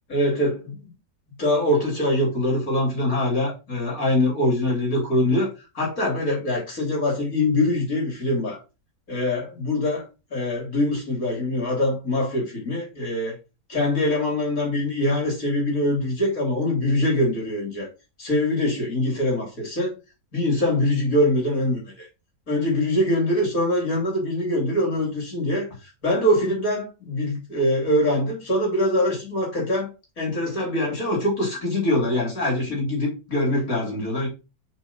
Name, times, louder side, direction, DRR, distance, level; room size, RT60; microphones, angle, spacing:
voice 1, 0.1-0.8 1.4-8.6 9.1-10.0 10.3-13.4 13.7-17.9 18.2-19.9 20.3-22.1 22.5-25.7 26.0-29.9 30.2-34.3, left 1 dB, 60° left, 4.0 m, -23 dB
6.3 x 5.0 x 4.4 m
omnidirectional pair, 1.7 m